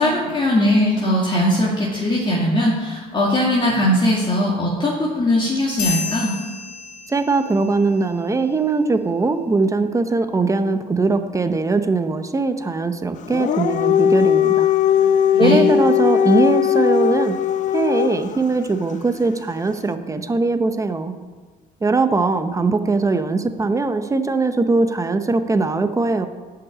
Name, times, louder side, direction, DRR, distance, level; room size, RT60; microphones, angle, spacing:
voice 1, 0.0-6.4 15.0-15.6, left 1 dB, 30° left, -4 dB, 2.3 m, -20 dB
sound 1, 5.8-7.7, left 6 dB, 70° left, 1.8 m, -30 dB
voice 2, 7.1-14.7 15.4-17.4 17.7-21.2 21.8-26.3, right 3 dB, 20° right, 9 dB, 0.9 m, -20 dB
Dog, 13.2-18.4, left 9 dB, 45° left, 0.5 m, -18 dB
11.5 x 5.9 x 8.6 m, 1.4 s
cardioid pair, 110°, 17 cm